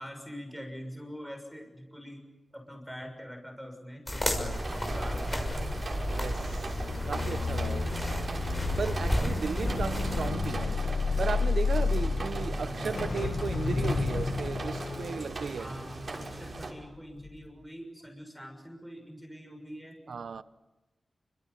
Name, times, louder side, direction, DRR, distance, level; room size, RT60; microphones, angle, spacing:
voice 1, 0.0-2.2 2.5-4.5 4.8-5.8 15.6-20.0, equal, ahead, 6.8 m, -44 dB
sound 1, 4.1-10.3, left 1 dB, 15° left, 6.2 m, -32 dB
voice 2, 4.3-5.0 6.1-6.8 7.0-8.0 8.8-10.9 11.2-15.7 20.1-20.4, right 5 dB, 90° right, 1.1 m, -36 dB
sound 2, 4.5-16.7, right 3 dB, 50° right, 6.2 m, -39 dB
sound 3, 6.6-16.8 17.2-17.5, left 4 dB, 70° left, 1.9 m, -32 dB
29.5 x 26.0 x 7.2 m
wide cardioid pair, 125°, 0 cm